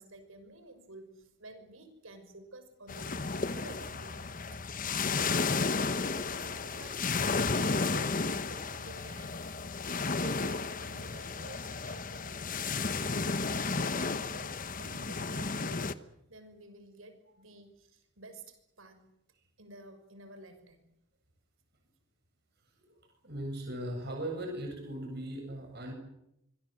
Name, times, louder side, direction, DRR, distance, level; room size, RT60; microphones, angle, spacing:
voice 1, 0.0-4.6 5.0-9.3 10.2-12.6 13.0-19.1 19.6-20.8, right 2 dB, 85° right, 8 dB, 6.1 m, -51 dB
sound 1, 2.9-15.9, left 4 dB, 40° left, 1.2 m, -33 dB
voice 2, 23.2-25.9, right 1 dB, 55° right, 2 dB, 7.9 m, -38 dB
25.5 x 23.0 x 7.8 m, 0.80 s
head